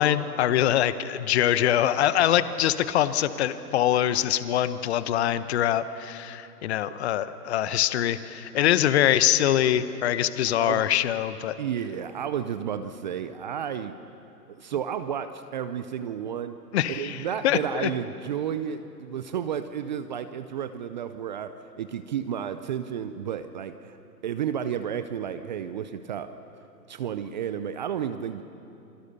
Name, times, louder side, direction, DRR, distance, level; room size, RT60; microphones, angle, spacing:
voice 1, 0.0-11.6 16.7-17.2 17.4-17.9, left 11 dB, 40° left, 13 dB, 1.0 m, -24 dB
voice 2, 11.6-14.0 14.5-16.6 16.9-24.0 24.2-26.4 26.9-28.4, right 8 dB, 30° right, 11 dB, 0.6 m, -32 dB
28.0 x 22.5 x 6.8 m, 2.9 s
hypercardioid pair, 140°, 48 cm